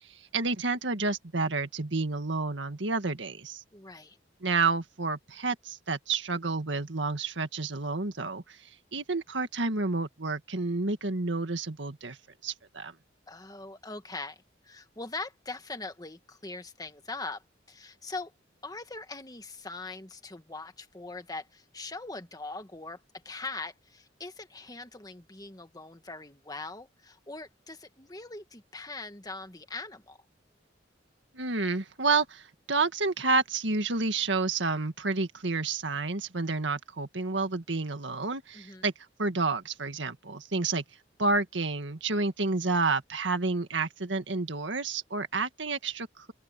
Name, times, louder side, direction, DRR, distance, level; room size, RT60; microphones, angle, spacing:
voice 1, 0.1-3.6 4.4-8.6 8.9-12.2 12.4-12.9 31.3-38.9 39.2-40.8 41.2-46.3, right 3 dB, 80° right, 1.8 m, -30 dB
voice 2, 3.7-4.2 13.3-18.3 18.6-23.0 23.2-30.2 38.5-38.9, left 3 dB, 20° left, 1.6 m, -41 dB
open air
head